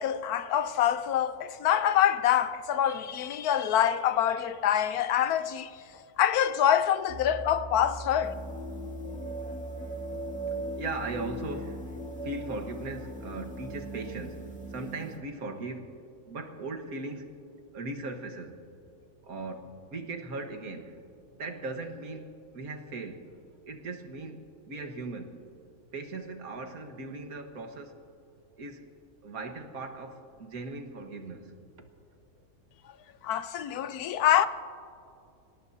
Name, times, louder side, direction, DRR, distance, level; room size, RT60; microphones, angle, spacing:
voice 1, 0.0-5.7 6.2-8.3 33.2-34.5, left 10 dB, 85° left, 1.2 m, -25 dB
sound 1, 7.1-14.8, right 1 dB, 35° right, 0.5 m, -43 dB
sound 2, 8.2-15.2, right 1 dB, 5° left, 1.9 m, -40 dB
voice 2, 10.5-16.0 16.3-17.3 17.7-18.6 19.2-21.0 21.3-23.4 23.6-25.4 25.9-28.0 28.6-28.9 29.2-31.9, right 3 dB, 70° right, 1.8 m, -39 dB
30.0 x 17.5 x 2.7 m
omnidirectional pair, 1.6 m